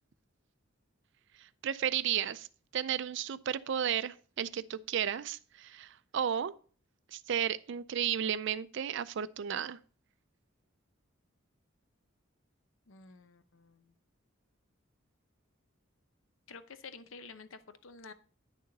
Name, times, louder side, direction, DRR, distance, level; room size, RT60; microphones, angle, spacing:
voice 1, 1.3-2.5 2.7-6.5 7.1-9.8, right 9 dB, 60° right, 0.4 m, -33 dB
voice 2, 12.9-13.9 16.5-18.1, left 4 dB, 75° left, 0.7 m, -50 dB
9.8 x 6.6 x 3.9 m
head